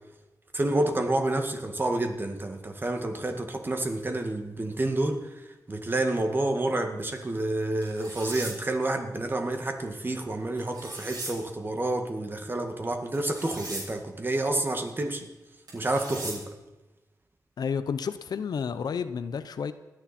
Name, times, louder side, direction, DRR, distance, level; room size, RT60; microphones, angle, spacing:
voice 1, 0.5-15.3 15.7-16.5, right 2 dB, 30° right, 1.8 m, -29 dB
sound 1, 7.8-8.5 10.6-11.3 13.1-13.8 15.7-16.3, right 2 dB, 85° right, 7.1 m, -38 dB
voice 2, 17.6-19.7, left 6 dB, 80° left, 0.7 m, -31 dB
28.0 x 9.9 x 4.3 m
wide cardioid pair, 100°, 7 cm